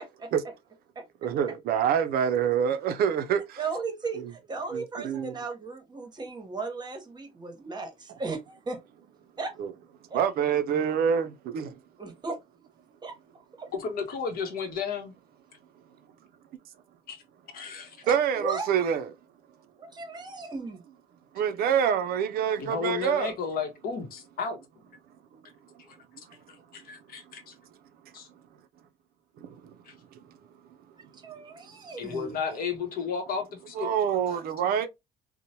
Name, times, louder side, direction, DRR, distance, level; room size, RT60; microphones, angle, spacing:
voice 1, 1.2-3.6 4.7-5.4 9.6-9.7 10.1-11.8 18.1-19.1 21.3-23.3 25.3-25.4 29.4-29.8 30.1-30.2 33.8-34.9, right 8 dB, 65° right, 0.4 m, -26 dB
voice 2, 3.6-8.8 9.4-9.5 10.1-10.2 12.0-12.4 13.0-13.2 13.6-13.7 18.0-18.7 19.8-20.8 31.0-32.4, right 4 dB, 25° right, 0.8 m, -36 dB
voice 3, 13.7-15.1 17.1-17.2 17.5-18.0 22.6-24.6 26.8-27.5 28.1-28.3 29.8-29.9 32.0-34.0, left 6 dB, 60° left, 0.8 m, -33 dB
2.9 x 2.0 x 2.7 m
cardioid pair, 110°, 17 cm